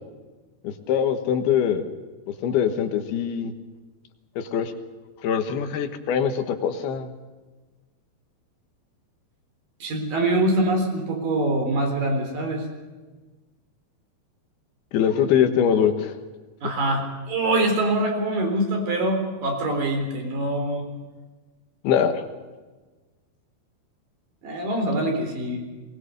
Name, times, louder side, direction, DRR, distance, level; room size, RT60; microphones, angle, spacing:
voice 1, 0.6-1.9 2.4-3.5 4.4-4.7 5.2-7.1 14.9-16.2 21.8-22.2, left 8 dB, 80° left, 7 dB, 3.3 m, -23 dB
voice 2, 9.8-12.6 16.6-20.9 24.4-25.6, right 1 dB, 60° right, 3 dB, 5.4 m, -24 dB
21.5 x 20.5 x 6.8 m, 1.3 s
omnidirectional pair, 4.4 m